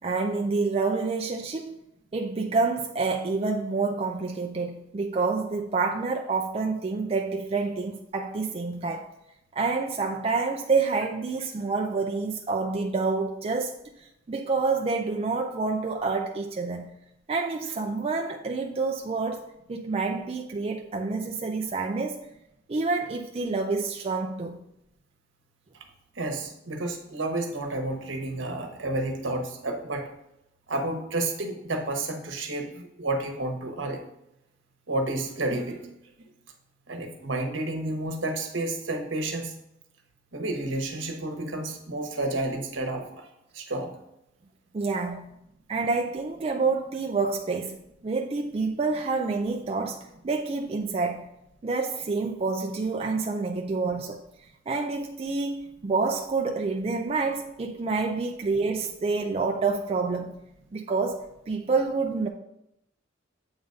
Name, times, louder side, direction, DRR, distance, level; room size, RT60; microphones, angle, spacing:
voice 1, 0.0-1.7 2.1-9.1 9.5-13.7 14.3-16.9 17.3-22.2 22.7-24.6 44.7-45.3 45.7-47.8 48.0-51.3 51.6-54.2 54.7-60.3 60.7-61.2 61.5-62.3, right 4 dB, 30° right, 0.4 m, -28 dB
voice 2, 26.2-30.0 30.7-34.0 34.9-35.9 36.9-39.5 40.3-43.3 43.5-43.9, right 2 dB, 70° right, 1.1 m, -30 dB
8.0 x 3.9 x 5.2 m
head